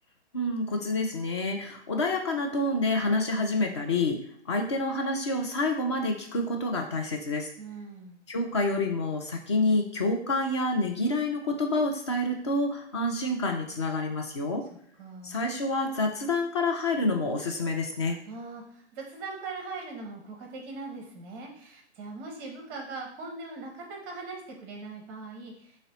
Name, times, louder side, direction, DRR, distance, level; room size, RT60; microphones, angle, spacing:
voice 1, 0.3-7.5 8.3-14.6 15.2-18.2, left 2 dB, 25° left, 3 dB, 0.4 m, -28 dB
voice 2, 7.6-8.2 14.7-15.4 18.3-25.8, right 3 dB, 20° right, 1 dB, 0.6 m, -41 dB
3.9 x 2.1 x 4.0 m, 0.66 s
figure-of-eight pair, 130°, 35 cm